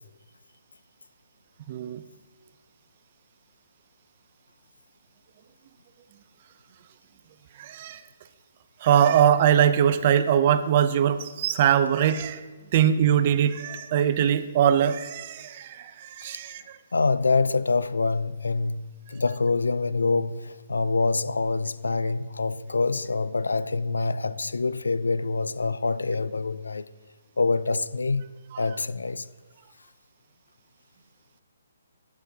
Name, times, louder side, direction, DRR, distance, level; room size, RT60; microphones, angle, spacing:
voice 1, 1.7-2.0 7.6-8.0 8.8-12.4 12.7-16.6, right 9 dB, 40° right, 0.5 m, -22 dB
voice 2, 16.9-26.9 27.4-28.3 28.6-29.3, left 3 dB, 85° left, 0.3 m, -26 dB
10.5 x 9.3 x 2.8 m
hypercardioid pair, 145°, 0 cm